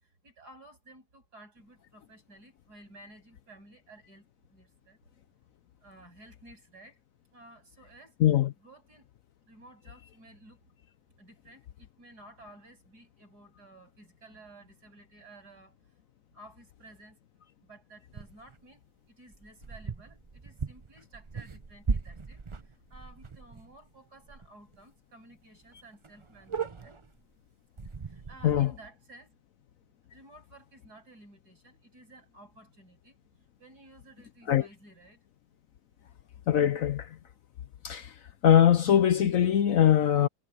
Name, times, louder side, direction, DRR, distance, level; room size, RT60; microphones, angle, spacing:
voice 1, 0.0-5.0 5.8-7.0 7.3-8.2 8.6-9.1 9.5-10.6 11.2-15.8 16.3-17.2 17.6-27.0 28.1-29.3 30.1-33.2 33.6-35.2, right 2 dB, 65° right, 8.7 m, -54 dB
sound 1, 18.1-18.6 19.3-23.8 24.2-24.5 24.7-24.8 25.3-25.4 25.6-25.7 26.0-27.2 27.8-28.6, right 5 dB, 40° right, 0.4 m, -37 dB
voice 2, 36.5-37.1 37.8-38.1 38.4-40.3, left 10 dB, 65° left, 1.0 m, -22 dB
omnidirectional pair, 1.8 m